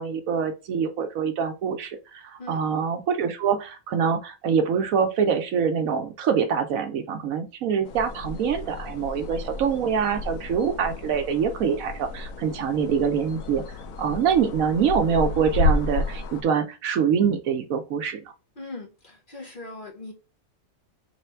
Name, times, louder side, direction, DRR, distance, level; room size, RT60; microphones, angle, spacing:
voice 1, 0.0-13.6 14.0-18.2, right 7 dB, 70° right, 1.1 m, -25 dB
sound 1, 7.8-16.4, left 3 dB, 70° left, 1.0 m, -31 dB
voice 2, 18.6-20.1, left 2 dB, 40° left, 1.0 m, -40 dB
3.3 x 3.2 x 4.4 m
omnidirectional pair, 1.5 m